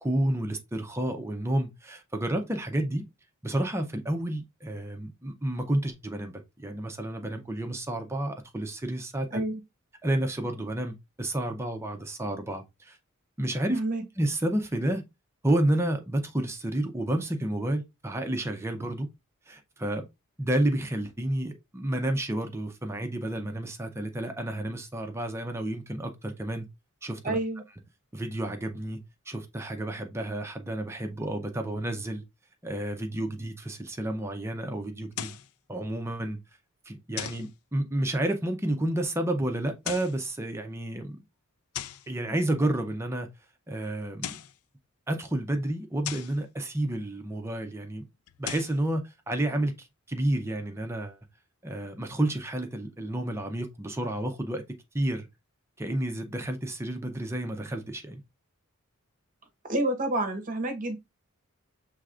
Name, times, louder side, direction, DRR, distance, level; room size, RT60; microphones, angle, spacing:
voice 1, 0.0-3.0 3.4-9.4 10.0-13.0 13.4-13.8 14.2-15.0 15.4-19.1 19.5-20.0 20.4-26.7 27.0-27.4 28.1-29.0 29.3-32.2 32.6-35.3 35.7-36.4 36.9-41.2 42.1-43.3 43.7-44.3 45.1-48.0 48.4-51.2 51.6-54.6 54.9-55.3 55.8-58.2, right 1 dB, 10° right, 0.5 m, -30 dB
voice 2, 13.7-14.0 27.2-27.6 59.7-61.0, right 1 dB, 40° right, 0.9 m, -28 dB
sound 1, 35.1-35.5 37.2-37.5 39.7-40.2 41.7-42.1 44.0-44.6 46.0-46.4 48.3-48.8, left 11 dB, 80° left, 0.4 m, -37 dB
6.2 x 3.3 x 2.4 m
head